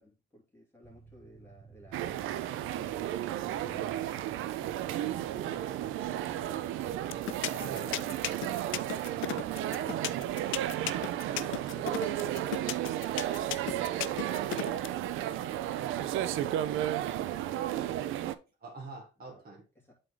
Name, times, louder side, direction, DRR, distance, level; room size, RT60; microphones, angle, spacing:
voice 1, 0.0-3.9 4.5-5.8 6.1-7.0 7.8-8.5 8.7-10.6 11.2-12.5 13.2-14.0 14.9-16.5 17.6-18.4 19.3-19.5 19.7-19.9, left 1 dB, 10° left, -3 dB, 2.5 m, -56 dB
sound 1, 0.8-8.6, right 4 dB, 30° right, 1.4 m, -56 dB
sound 2, 1.9-18.3, right 12 dB, 90° right, 0.5 m, -33 dB
sound 3, 7.1-14.9, left 14 dB, 80° left, 0.5 m, -34 dB
voice 2, 7.5-8.1 11.3-12.2 17.7-17.9 18.6-19.6, right 2 dB, 50° right, 0 dB, 1.6 m, -46 dB
8.2 x 3.8 x 3.8 m, 0.32 s
cardioid pair, 90°, 20 cm